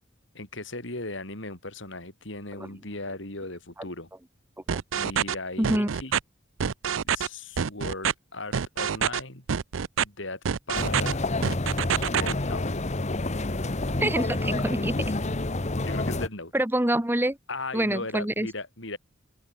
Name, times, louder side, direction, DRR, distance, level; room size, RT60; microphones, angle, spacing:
voice 1, 0.3-4.1 4.9-6.1 7.1-9.4 10.0-10.4 10.7-11.2 12.0-12.6 15.8-16.5 17.5-19.0, left 2 dB, 65° left, 5.5 m, -37 dB
sound 1, 4.7-5.3 5.6-6.2 6.6-7.3 7.6-8.1 8.5-9.2 9.5-10.0 10.4-11.1 11.4-12.3, right 7 dB, 80° right, 0.5 m, -26 dB
voice 2, 5.6-5.9 14.0-15.1 16.5-17.4 17.7-18.5, right 1 dB, 10° right, 1.5 m, -26 dB
sound 2, 10.7-16.3, left 2 dB, 35° left, 1.3 m, -28 dB
open air
head